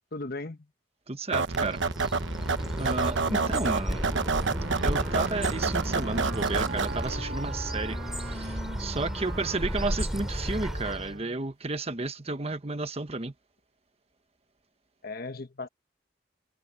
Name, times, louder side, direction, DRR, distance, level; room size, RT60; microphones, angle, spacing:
voice 1, 0.1-0.6 3.3-3.8 15.0-15.7, left 2 dB, 55° left, 1.3 m, -37 dB
voice 2, 1.1-1.8 2.8-4.1 4.8-8.0 8.3-13.3, right 3 dB, 35° right, 1.2 m, -32 dB
sound 1, 1.3-7.2, right 4 dB, 90° right, 1.0 m, -29 dB
Bird, 1.5-11.2, equal, ahead, 2.8 m, -34 dB
Wind instrument woodwind instrument, 4.1-11.6, right 3 dB, 60° right, 1.4 m, -41 dB
head